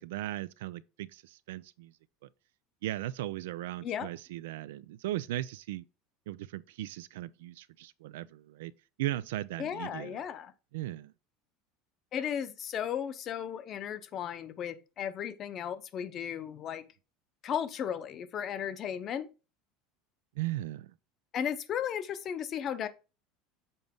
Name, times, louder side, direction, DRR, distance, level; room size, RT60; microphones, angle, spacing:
voice 1, 0.0-1.9 2.8-5.8 6.3-8.7 9.0-10.2 10.7-11.1 20.4-20.9, right 15 dB, 90° right, 0.4 m, -37 dB
voice 2, 9.6-10.5 12.1-16.8 17.4-19.3 21.3-22.9, left 9 dB, 40° left, 0.7 m, -35 dB
7.0 x 4.0 x 3.5 m
supercardioid pair, 130°, 0 cm